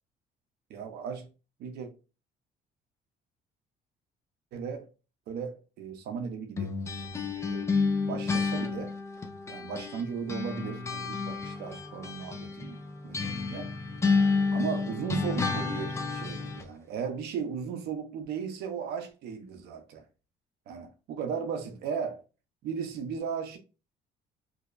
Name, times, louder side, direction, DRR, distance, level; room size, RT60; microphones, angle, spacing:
voice 1, 0.7-1.3 1.6-1.9 4.5-4.9 5.3-6.7 7.3-7.7 8.0-8.9 9.5-12.8 13.0-13.7 14.5-20.0 20.7-22.2 22.6-23.6, right 6 dB, 75° right, 0.6 m, -36 dB
sound 1, 6.6-10.0 10.3-16.7, left 4 dB, 15° left, 0.3 m, -30 dB
2.6 x 2.0 x 2.3 m
cardioid pair, 110°, 17 cm